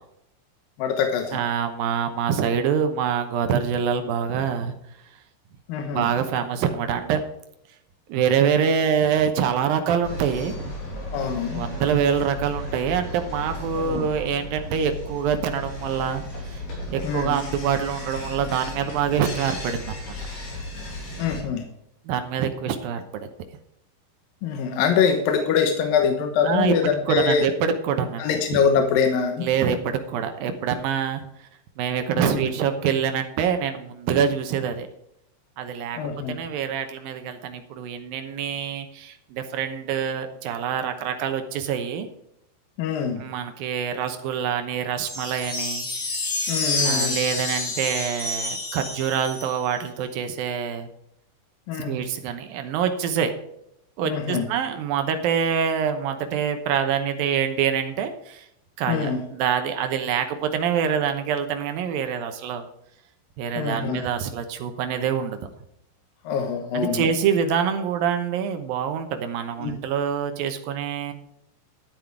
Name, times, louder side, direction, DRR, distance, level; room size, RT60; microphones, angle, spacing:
voice 1, 0.8-1.4 5.7-6.1 11.1-11.6 13.8-14.1 17.0-17.3 21.2-21.6 24.4-27.5 28.2-29.5 32.2-32.5 36.0-36.4 42.8-43.2 46.5-47.2 51.7-52.0 54.1-54.4 58.9-59.2 63.6-64.0 66.3-67.1 69.6-69.8, left 6 dB, 70° left, 5 dB, 2.3 m, -24 dB
voice 2, 1.3-4.7 5.9-7.2 8.1-10.7 11.5-16.6 16.9-20.0 22.1-23.3 26.4-26.8 27.1-28.6 29.4-31.2 31.8-34.9 35.6-36.0 36.3-42.1 43.2-45.9 46.8-50.9 51.9-53.3 54.0-58.5 58.8-62.7 63.4-65.4 66.7-71.1, right 7 dB, 75° right, 7 dB, 2.1 m, -25 dB
sound 1, 10.0-21.4, left 1 dB, 55° left, 4.2 m, -35 dB
sound 2, 45.0-49.8, left 2 dB, 25° left, 3.1 m, -28 dB
12.5 x 9.0 x 4.7 m, 0.79 s
omnidirectional pair, 5.4 m